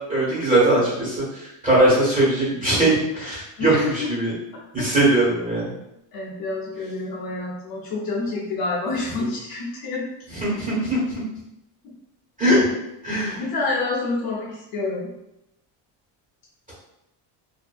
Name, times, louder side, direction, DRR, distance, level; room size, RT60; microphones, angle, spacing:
voice 1, 0.1-4.3 4.7-5.7 10.4-11.2 12.4-12.6 13.0-13.4, right 1 dB, 15° right, -9 dB, 1.2 m, -20 dB
voice 2, 3.6-4.1 4.5-4.9 6.1-10.1 11.8-11.9 13.3-15.1, left 3 dB, 50° left, -5 dB, 0.6 m, -28 dB
2.7 x 2.5 x 2.3 m, 0.85 s
cardioid pair, 170°, 47 cm